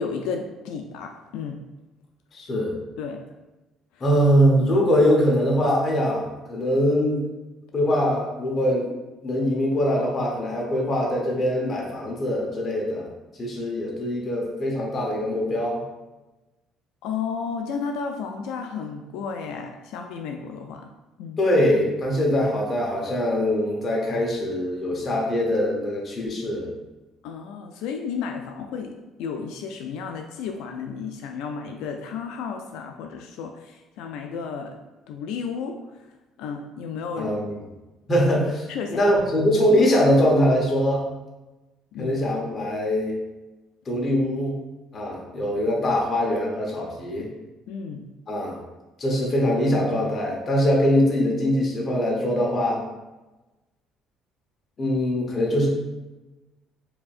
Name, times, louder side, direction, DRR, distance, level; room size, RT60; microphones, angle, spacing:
voice 1, 0.0-1.6 3.0-3.2 4.0-4.1 17.0-20.9 21.2-21.4 27.2-28.9 29.2-36.1 36.4-37.3 38.7-39.0 41.9-42.2 47.7-48.0, left 6 dB, 85° left, 3 dB, 0.3 m, -33 dB
voice 2, 2.3-2.7 4.0-7.2 7.7-8.9 9.2-13.1 13.4-15.8 21.4-26.7 37.2-37.6 38.1-41.0 42.0-43.2 43.9-44.6 44.9-47.3 48.3-48.6 49.0-52.8 54.8-55.7, equal, 30° left, -2 dB, 1.0 m, -22 dB
4.8 x 2.7 x 2.5 m, 1.1 s
cardioid pair, 145°, 0 cm